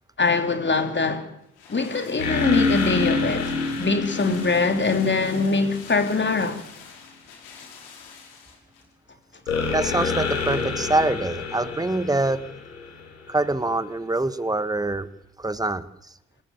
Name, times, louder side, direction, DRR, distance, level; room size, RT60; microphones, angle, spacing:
voice 1, 0.2-1.3 1.7-6.6, left 4 dB, 25° left, 3.4 m, -23 dB
sound 1, 1.3-8.9 9.2-9.3, left 6 dB, 60° left, 6.0 m, -46 dB
sound 2, 2.2-5.9 9.5-13.4, left 4 dB, 85° left, 3.8 m, -27 dB
voice 2, 9.7-12.4 13.3-15.1 15.4-16.1, right 2 dB, 10° right, 1.6 m, -25 dB
28.0 x 14.5 x 8.4 m
figure-of-eight pair, 45°, 41 cm